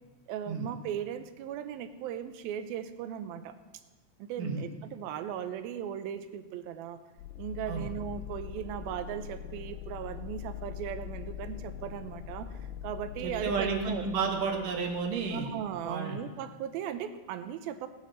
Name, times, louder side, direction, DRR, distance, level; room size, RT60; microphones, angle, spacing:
voice 1, 0.3-3.6 4.2-7.0 7.4-14.1 15.3-17.9, right 9 dB, 85° right, 10 dB, 2.6 m, -38 dB
sound 1, 7.2-15.9, left 10 dB, 85° left, 2.4 m, -42 dB
voice 2, 13.2-15.5 15.8-16.2, right 5 dB, 65° right, 2 dB, 3.0 m, -31 dB
19.0 x 7.2 x 6.2 m, 1.2 s
omnidirectional pair, 4.2 m